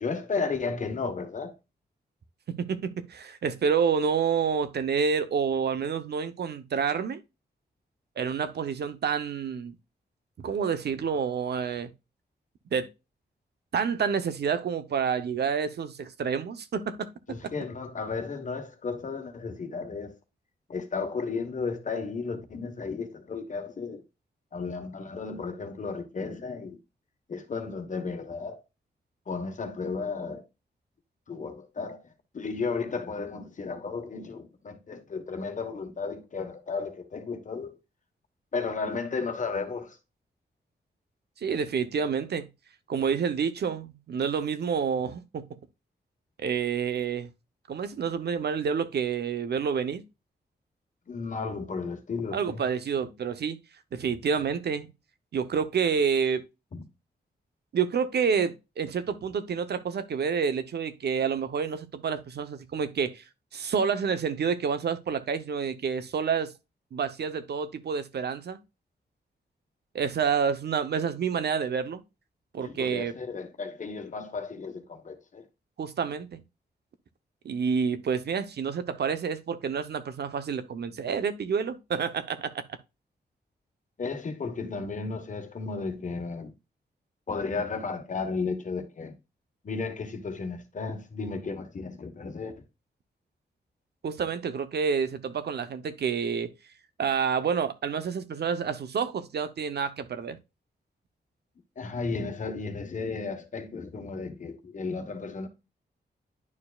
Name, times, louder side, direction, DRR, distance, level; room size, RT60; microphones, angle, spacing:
voice 1, 0.0-1.5 17.3-20.2 20.7-24.0 24.5-26.8 27.3-28.6 29.3-30.4 31.3-32.0 32.3-37.8 38.5-40.0 51.1-52.7 56.7-56.8 72.6-75.4 84.0-86.5 87.3-89.1 89.6-92.6 101.8-105.5, left 4 dB, 45° left, 1.2 m, -34 dB
voice 2, 2.5-7.2 8.2-9.7 10.4-11.9 12.7-12.9 13.7-17.5 41.4-42.5 42.9-45.4 46.4-47.3 47.7-50.0 52.3-53.6 53.9-54.9 55.3-56.4 57.7-63.2 63.5-66.5 66.9-68.6 69.9-72.0 72.5-73.1 75.8-76.4 77.4-82.5 94.0-96.5 97.0-100.4, right 6 dB, 70° right, 0.8 m, -28 dB
10.5 x 4.7 x 2.4 m
wide cardioid pair, 145°, 18 cm